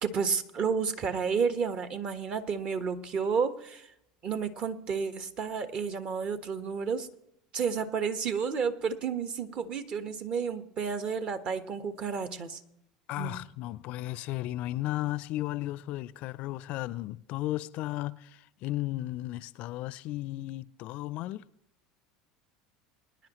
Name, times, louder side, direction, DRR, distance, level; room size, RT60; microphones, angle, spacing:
voice 1, 0.0-3.9 4.2-7.1 7.5-12.6 13.2-13.4, right 6 dB, 45° right, 1.3 m, -31 dB
voice 2, 13.1-21.4, left 16 dB, 55° left, 0.4 m, -35 dB
23.5 x 10.5 x 3.0 m
hypercardioid pair, 75°, 3 cm